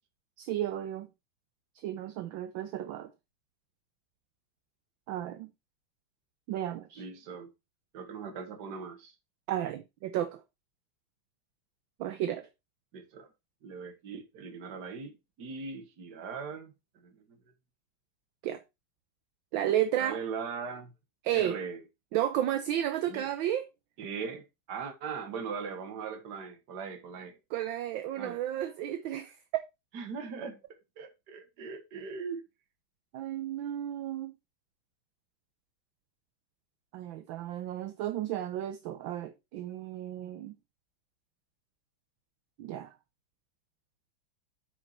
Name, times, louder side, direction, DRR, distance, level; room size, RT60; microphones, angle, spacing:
voice 1, 0.4-1.1 1.8-3.1 5.1-5.5 6.5-7.0 9.5-10.4 12.0-12.5 18.4-18.6 19.5-20.2 21.2-21.6 22.1-23.7 27.5-29.6 33.1-34.3 36.9-40.5 42.6-42.9, right 11 dB, 70° right, 1.4 m, -33 dB
voice 2, 7.0-7.5 7.9-9.1 12.9-13.3 13.6-16.7 17.0-17.4 20.0-20.9 21.3-21.8 23.1-23.3 24.0-27.4 28.2-28.4 29.9-30.6 31.0-32.4, right 5 dB, 55° right, 1.9 m, -40 dB
8.5 x 4.9 x 4.4 m
omnidirectional pair, 2.3 m